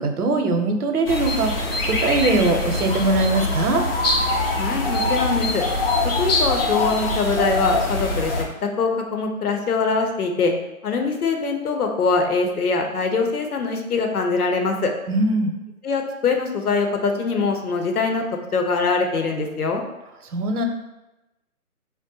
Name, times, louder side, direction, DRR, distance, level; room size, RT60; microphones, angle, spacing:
voice 1, 0.0-3.8 15.1-15.5 20.3-20.6, right 2 dB, 80° right, 5 dB, 0.7 m, -21 dB
sound 1, 1.1-8.4, left 2 dB, 40° left, 0.5 m, -23 dB
voice 2, 4.6-5.6 6.2-8.3 8.6-10.5 10.8-14.9 15.8-18.2 18.5-19.8, left 4 dB, 80° left, 3 dB, 0.7 m, -23 dB
4.6 x 2.1 x 2.7 m, 0.98 s
hypercardioid pair, 160°, 44 cm